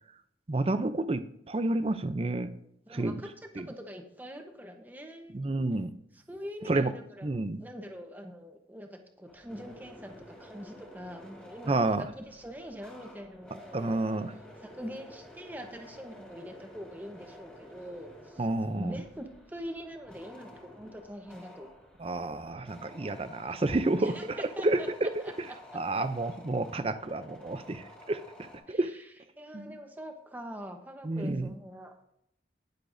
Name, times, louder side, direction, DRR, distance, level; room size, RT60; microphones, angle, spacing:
voice 1, 0.5-2.5 2.9-3.2 3.6-3.7 5.3-5.9 6.7-6.9 7.2-7.6 11.7-12.1 13.7-14.3 18.4-19.0 22.0-25.1 25.7-28.2 28.7-28.9 29.5-29.7 31.0-31.5, right 2 dB, 30° right, 11 dB, 0.5 m, -30 dB
voice 2, 2.9-3.3 3.5-5.3 6.1-7.3 7.6-14.0 14.6-18.5 18.8-21.7 24.0-24.2 24.6-25.3 25.7-25.8 28.7-29.1 29.4-32.0, equal, 10° right, 4 dB, 0.9 m, -43 dB
sound 1, 9.3-28.6, left 1 dB, 5° left, 2.1 m, -51 dB
19.5 x 6.7 x 2.6 m, 0.76 s
head